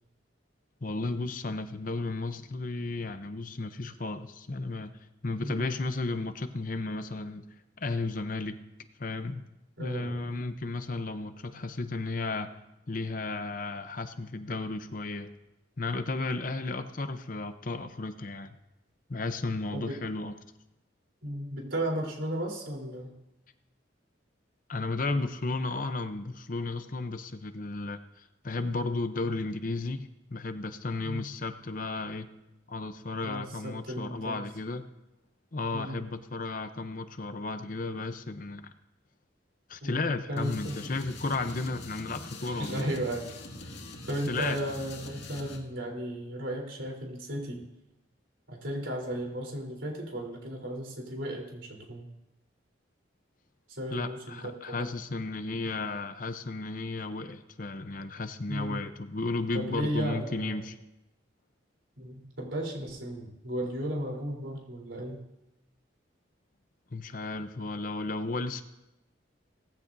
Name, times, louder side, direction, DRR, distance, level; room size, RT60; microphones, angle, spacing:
voice 1, 0.8-7.4 7.8-8.6 9.0-9.4 9.8-12.5 12.9-15.3 15.8-18.6 19.1-20.3 24.7-32.3 32.7-34.9 35.5-38.6 39.7-42.9 44.3-44.6 53.9-60.8 66.9-68.6, left 3 dB, 45° left, 9 dB, 0.7 m, -34 dB
voice 2, 5.4-5.7 9.8-10.3 19.7-20.0 21.2-23.2 31.0-31.2 33.2-34.4 35.7-36.1 39.8-40.8 42.4-43.3 44.1-47.6 48.5-52.1 53.7-54.9 58.5-58.9 59.5-60.6 62.0-65.2, right 1 dB, 80° right, -1 dB, 3.7 m, -35 dB
sound 1, 40.4-45.6, left 2 dB, 65° left, 2.2 m, -43 dB
18.5 x 15.0 x 2.7 m, 0.91 s
head